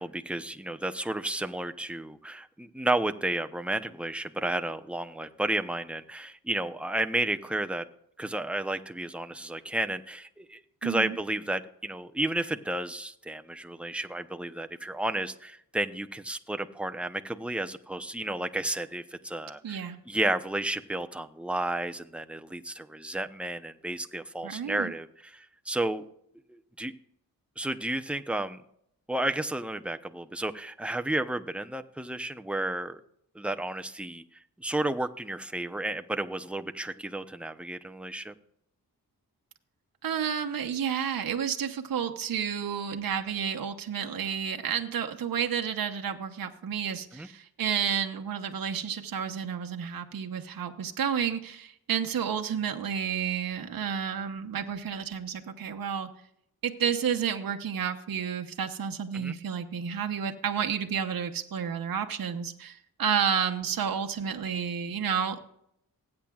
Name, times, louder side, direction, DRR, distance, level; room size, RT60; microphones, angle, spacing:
voice 1, 0.0-7.9 8.2-26.1 26.8-26.9 27.6-28.6 29.1-33.0 33.3-34.2 34.6-38.3 47.1-47.3 59.1-59.3, right 1 dB, 5° right, 7 dB, 0.7 m, -32 dB
voice 2, 10.8-11.2 19.6-20.0 24.4-24.9 40.0-56.1 56.6-65.5, right 7 dB, 65° right, 5 dB, 1.0 m, -31 dB
19.5 x 8.8 x 2.4 m, 0.72 s
cardioid pair, 65°, 37 cm